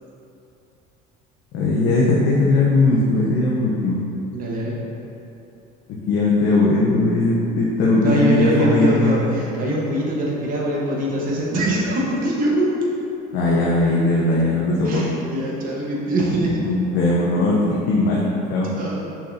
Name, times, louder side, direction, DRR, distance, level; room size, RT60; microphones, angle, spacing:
voice 1, 1.5-4.0 6.1-9.3 13.3-15.1 16.6-18.2 18.5-18.7, left 2 dB, 70° left, -5 dB, 0.9 m, -19 dB
voice 2, 4.3-4.8 8.0-12.7 14.3-14.4 14.8-16.6 18.8-19.1, right 1 dB, 45° right, -3 dB, 1.3 m, -23 dB
6.1 x 5.9 x 2.8 m, 2.8 s
cardioid pair, 115°, 19 cm